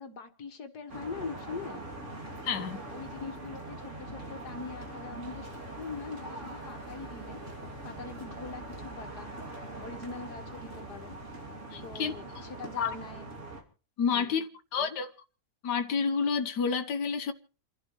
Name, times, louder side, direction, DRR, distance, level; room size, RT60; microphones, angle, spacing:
voice 1, 0.0-1.9 2.9-7.4 7.8-9.3 9.8-11.1 11.8-13.3 14.1-14.4 14.8-15.0, left 4 dB, 70° left, 2.2 m, -42 dB
sound 1, 0.9-13.6, right 2 dB, 45° right, 3.2 m, -42 dB
voice 2, 2.4-2.8 11.7-12.1 12.8-13.0 14.0-14.4 14.7-15.1 15.6-17.3, left 6 dB, 90° left, 1.7 m, -29 dB
29.0 x 11.5 x 3.2 m
omnidirectional pair, 1.8 m